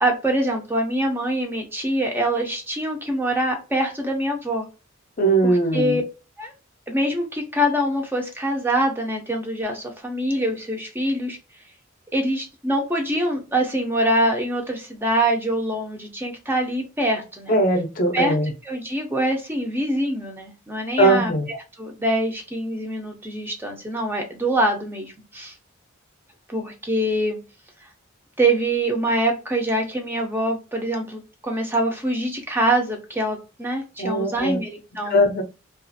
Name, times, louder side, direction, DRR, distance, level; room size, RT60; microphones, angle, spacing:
voice 1, 0.0-4.7 5.4-6.0 6.4-6.5 6.9-11.4 12.1-17.5 18.1-18.3 18.6-25.5 26.5-27.4 28.4-35.2, right 1 dB, 10° right, 2 dB, 0.5 m, -24 dB
voice 2, 5.2-6.0 17.5-18.5 21.0-21.5 34.0-34.6 35.1-35.4, right 1 dB, 45° left, 5 dB, 0.5 m, -20 dB
2.4 x 2.3 x 2.5 m, 0.30 s
head